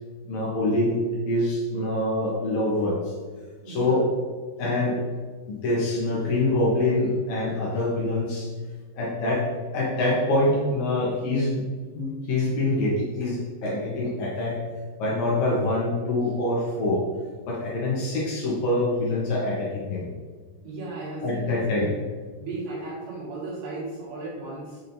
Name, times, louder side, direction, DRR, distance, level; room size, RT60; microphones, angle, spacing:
voice 1, 0.3-1.0 1.2-3.1 3.7-4.0 4.6-5.0 5.6-8.5 9.0-9.5 9.7-11.6 11.9-14.6 15.0-17.0 17.5-20.1 21.2-21.9, left 2 dB, 85° left, -4 dB, 1.6 m, -25 dB
voice 2, 3.6-4.0 20.6-21.9 22.4-24.8, right 2 dB, 75° right, -8 dB, 3.8 m, -35 dB
7.1 x 6.1 x 2.7 m, 1.5 s
omnidirectional pair, 5.1 m